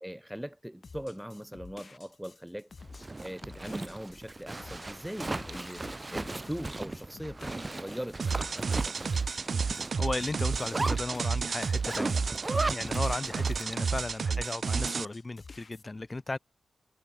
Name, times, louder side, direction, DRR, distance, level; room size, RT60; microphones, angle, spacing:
voice 1, 0.0-2.7 3.2-5.8 6.1-9.2 14.3-14.4, equal, 5° right, 2.6 m, -41 dB
sound 1, 0.8-13.7 14.0-15.8, left 4 dB, 40° left, 5.0 m, -51 dB
Zipper (clothing), 2.8-14.0, right 2 dB, 20° right, 1.4 m, -37 dB
sound 2, 8.2-15.0, right 5 dB, 50° right, 0.8 m, -31 dB
voice 2, 9.6-12.2 12.7-16.4, left 2 dB, 20° left, 2.7 m, -36 dB
wide cardioid pair, 170°, 0 cm